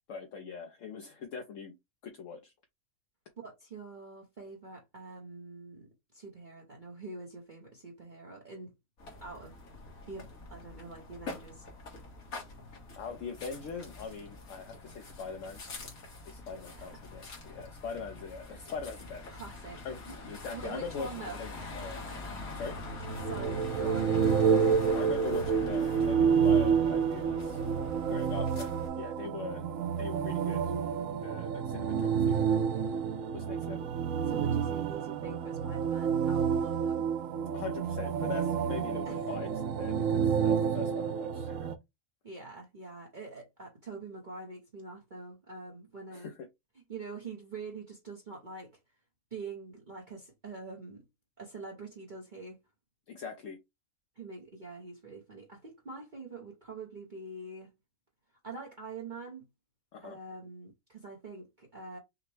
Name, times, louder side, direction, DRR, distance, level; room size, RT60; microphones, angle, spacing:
voice 1, 0.1-1.7 2.0-2.5 12.9-15.6 16.3-19.3 19.8-22.0 22.5-22.8 24.9-27.6 28.1-29.6 30.0-30.7 31.2-32.9 33.3-33.9 37.5-41.7 46.1-46.5 53.1-53.6 59.9-60.2, left 5 dB, 65° left, 1.0 m, -42 dB
voice 2, 3.4-5.9 6.1-8.7 9.2-9.5 10.1-11.6 16.7-17.0 19.3-20.0 20.5-21.4 23.2-24.1 34.3-37.1 39.0-39.2 42.2-46.3 46.9-48.8 49.3-51.0 51.4-52.6 54.2-57.7 58.4-59.5 60.0-62.0, right 3 dB, 40° right, 0.9 m, -45 dB
sound 1, 9.0-28.9, left 2 dB, 80° left, 1.9 m, -44 dB
sound 2, 23.0-41.7, right 7 dB, 75° right, 1.0 m, -29 dB
5.9 x 2.2 x 3.2 m
omnidirectional pair, 1.5 m